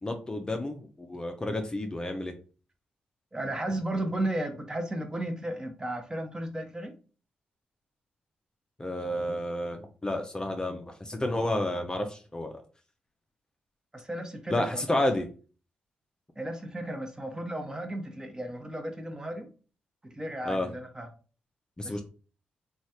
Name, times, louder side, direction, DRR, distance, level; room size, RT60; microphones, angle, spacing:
voice 1, 0.0-2.4 8.8-12.6 14.5-15.2 20.4-20.7 21.8-22.0, left 1 dB, 20° left, 4 dB, 0.5 m, -31 dB
voice 2, 3.3-6.9 13.9-15.0 16.4-19.5 20.1-21.1 21.8-22.0, right 1 dB, 20° right, 5 dB, 0.8 m, -34 dB
3.0 x 2.3 x 2.8 m, 0.37 s
supercardioid pair, 50°, 4 cm